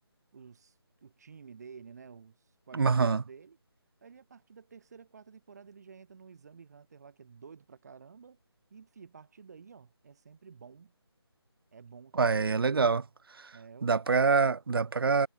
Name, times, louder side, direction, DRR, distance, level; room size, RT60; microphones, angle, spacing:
voice 1, 0.3-3.6 4.0-8.4 8.7-10.9 11.7-12.9 13.5-14.1, right 6 dB, 40° right, 6.0 m, -52 dB
voice 2, 2.7-3.2 12.2-13.0 13.8-15.3, right 4 dB, 60° right, 0.7 m, -25 dB
figure-of-eight pair, 165°, 14 cm